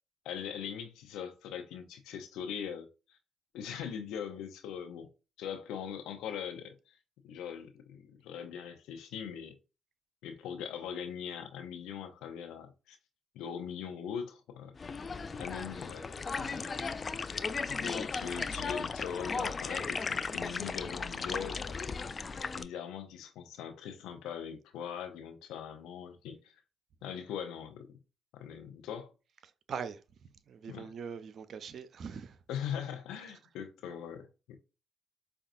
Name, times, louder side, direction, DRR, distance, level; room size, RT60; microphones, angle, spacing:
voice 1, 0.2-3.2 3.5-5.1 5.4-6.9 7.2-9.6 10.2-13.0 13.3-14.7 15.3-17.4 17.7-21.9 22.5-26.5 27.0-28.0 28.3-29.1 30.7-30.9 32.5-34.6, left 8 dB, 80° left, 0.6 m, -41 dB
sound 1, 14.8-22.6, left 4 dB, 40° left, 0.3 m, -36 dB
voice 2, 29.7-30.0 30.5-32.4, right 6 dB, 60° right, 0.5 m, -41 dB
5.1 x 2.4 x 2.6 m
hypercardioid pair, 50°, 0 cm